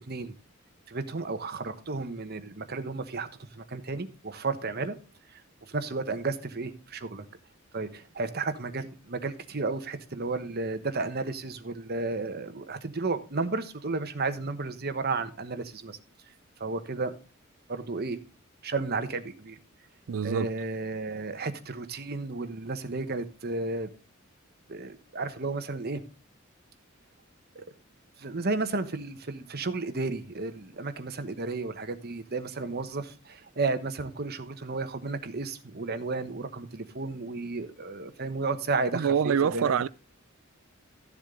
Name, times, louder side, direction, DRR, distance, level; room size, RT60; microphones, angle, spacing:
voice 1, 0.9-5.0 5.3-5.4 5.7-7.2 7.7-16.0 16.6-17.1 17.7-18.2 18.6-19.6 20.2-23.9 24.7-26.0 27.5-27.7 28.2-39.9, right 3 dB, 50° right, 1.1 m, -33 dB
voice 2, 20.1-20.5 38.9-39.9, right 7 dB, 85° right, 0.4 m, -25 dB
13.5 x 7.3 x 3.8 m
head